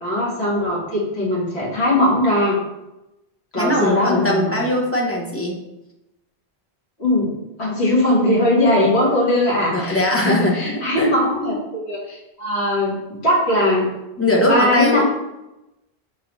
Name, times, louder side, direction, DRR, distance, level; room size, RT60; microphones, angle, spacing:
voice 1, 0.0-2.6 3.5-4.6 7.0-7.3 7.6-13.9 14.5-15.0, left 1 dB, 75° left, -7 dB, 1.8 m, -20 dB
voice 2, 3.6-5.6 8.8-8.9 9.7-11.1 14.2-15.0, left 1 dB, 15° left, -3 dB, 0.7 m, -20 dB
4.8 x 3.7 x 3.0 m, 0.95 s
omnidirectional pair, 1.1 m